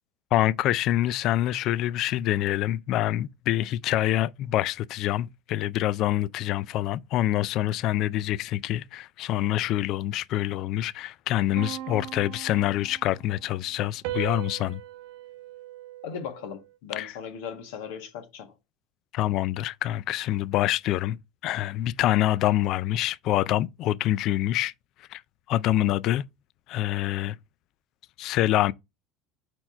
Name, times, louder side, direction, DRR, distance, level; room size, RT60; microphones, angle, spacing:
voice 1, 0.3-14.8 17.0-17.1 19.1-21.2 21.4-24.7 25.1-25.2 25.5-26.2 26.7-27.4 28.2-28.7, left 13 dB, 60° left, 0.3 m, -26 dB
sound 1, 11.5-13.3 14.0-16.7, right 13 dB, 75° right, 0.8 m, -38 dB
voice 2, 16.0-18.5, left 7 dB, 80° left, 1.5 m, -38 dB
4.4 x 4.3 x 5.5 m
supercardioid pair, 95°, 0 cm